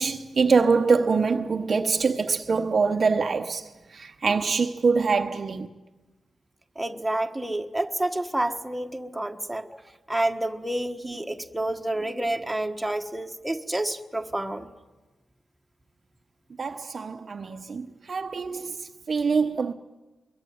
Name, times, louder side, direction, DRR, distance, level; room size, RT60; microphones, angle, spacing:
voice 1, 0.0-5.7 16.6-19.7, right 4 dB, 45° right, 0.9 m, -24 dB
voice 2, 6.8-9.8 10.1-14.7, right 1 dB, 5° right, 1.4 m, -29 dB
24.5 x 22.0 x 9.5 m
wide cardioid pair, 115°, 0 cm